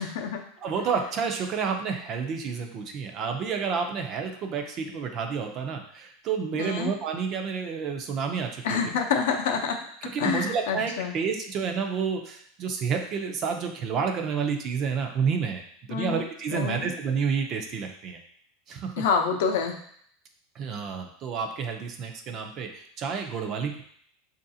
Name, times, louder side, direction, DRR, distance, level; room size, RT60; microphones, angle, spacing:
voice 1, 0.0-0.4 6.6-6.9 8.6-9.8 10.2-11.1 15.9-16.2 16.5-16.9 19.0-19.7, left 6 dB, 70° left, 3 dB, 0.6 m, -27 dB
voice 2, 0.6-8.8 10.0-15.6 15.9-18.2 18.7-19.0 20.5-23.8, right 6 dB, 30° right, 4 dB, 0.4 m, -30 dB
4.7 x 2.5 x 2.7 m, 0.63 s
supercardioid pair, 165°, 0 cm